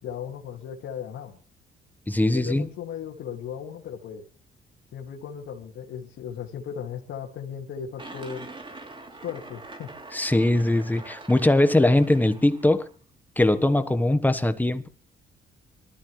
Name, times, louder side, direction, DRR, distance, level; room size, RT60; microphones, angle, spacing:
voice 1, 0.0-1.4 2.3-4.2 4.9-8.5 9.2-9.9, left 8 dB, 80° left, 2.2 m, -36 dB
voice 2, 2.1-2.7 10.1-12.9 13.4-14.9, left 1 dB, 10° left, 1.3 m, -21 dB
sound 1, 8.0-12.9, right 2 dB, 25° right, 3.3 m, -44 dB
24.0 x 13.0 x 3.3 m
cardioid pair, 90°, 20 cm